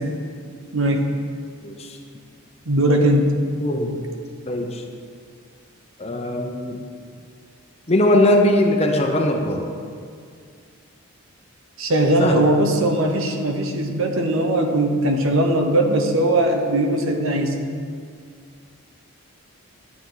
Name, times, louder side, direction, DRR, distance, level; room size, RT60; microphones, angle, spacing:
voice 1, 0.7-1.1 2.7-3.3 11.8-17.6, right 1 dB, 65° right, 4 dB, 1.0 m, -19 dB
voice 2, 1.6-2.0 3.6-4.0 4.5-4.8 6.0-6.8 7.9-9.6 12.2-12.5, left 1 dB, 30° left, 2 dB, 0.8 m, -20 dB
12.0 x 8.4 x 3.9 m, 2.2 s
head